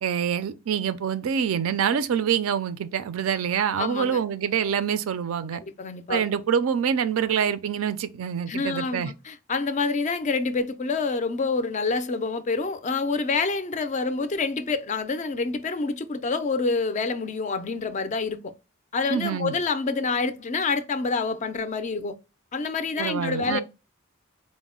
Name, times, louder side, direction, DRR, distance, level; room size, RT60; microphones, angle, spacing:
voice 1, 0.0-5.6 6.1-9.1 19.1-19.5 23.0-23.6, right 8 dB, 65° right, 0.3 m, -26 dB
voice 2, 3.8-4.2 5.6-6.2 8.5-18.5 18.9-22.1 22.5-23.6, left 4 dB, 35° left, 0.3 m, -27 dB
3.9 x 2.0 x 3.6 m
head